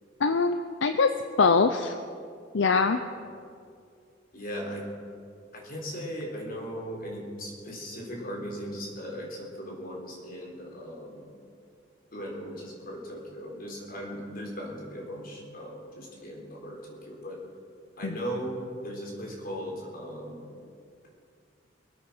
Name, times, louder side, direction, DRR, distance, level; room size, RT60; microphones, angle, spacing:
voice 1, 0.2-1.1 1.4-1.9 2.5-3.0 18.0-18.1, left 4 dB, 75° left, 8 dB, 0.6 m, -23 dB
voice 2, 4.3-4.8 5.5-11.3 12.1-17.4 18.0-18.6 18.8-20.4, equal, 50° left, -1 dB, 3.9 m, -38 dB
24.5 x 9.0 x 6.1 m, 2.3 s
head